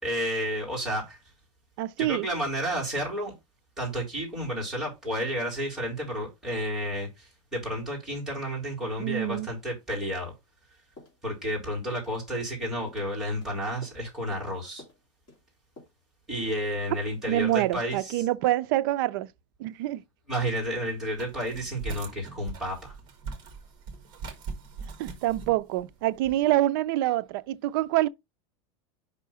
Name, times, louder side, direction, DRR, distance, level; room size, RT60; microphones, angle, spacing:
voice 1, 0.0-1.2 2.0-3.3 3.8-10.3 11.2-14.8 16.3-18.3 20.3-22.9, equal, ahead, 3.0 m, -31 dB
voice 2, 1.8-2.3 9.0-9.5 17.3-19.3 19.6-20.0 25.0-28.1, right 15 dB, 45° right, 0.4 m, -26 dB
sound 1, 11.0-11.6 11.9-12.1 12.4-12.6 12.9-13.5 13.8-14.0 14.3-14.5 14.8-15.0 15.3-15.4 15.8-15.9, left 2 dB, 25° left, 3.1 m, -50 dB
sound 2, 21.1-26.4, right 4 dB, 25° right, 1.5 m, -41 dB
5.5 x 3.8 x 5.6 m
supercardioid pair, 175°, 16 cm